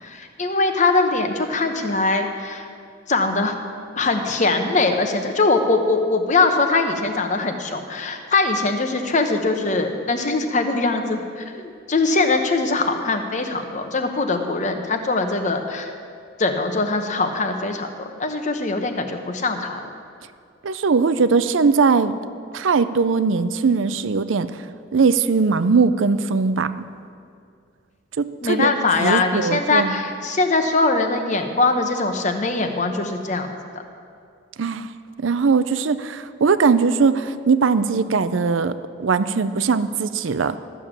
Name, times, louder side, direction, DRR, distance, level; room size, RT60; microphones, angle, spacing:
voice 1, 0.0-2.7 3.1-3.5 4.0-15.9 16.4-19.8 28.4-33.5, left 3 dB, 40° left, 6 dB, 0.9 m, -22 dB
voice 2, 20.6-22.1 22.5-24.5 24.9-26.7 28.2-28.7 29.0-30.0 34.6-34.9 35.2-38.7 39.0-40.6, right 5 dB, 75° right, 13 dB, 0.5 m, -20 dB
13.0 x 7.0 x 7.4 m, 2.3 s
head